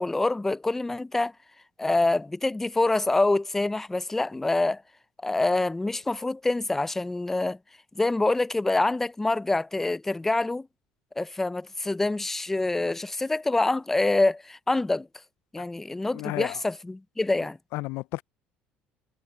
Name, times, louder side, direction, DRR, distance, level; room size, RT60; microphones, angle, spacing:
voice 1, 0.0-1.3 1.8-4.8 5.2-7.6 8.0-10.7 11.2-15.1 15.5-17.6, left 2 dB, 10° left, 0.4 m, -26 dB
voice 2, 16.1-16.6 17.7-18.2, left 20 dB, 75° left, 0.3 m, -32 dB
cardioid pair, 135°, 4 cm